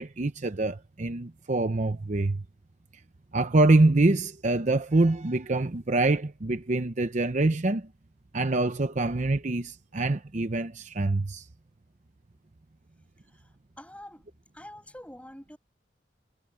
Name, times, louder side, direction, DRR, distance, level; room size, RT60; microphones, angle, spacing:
voice 1, 0.0-2.4 3.3-7.9 8.3-11.4, right 2 dB, 40° right, 0.7 m, -25 dB
voice 2, 13.8-14.3 14.5-15.6, left 1 dB, 5° left, 6.2 m, -45 dB
head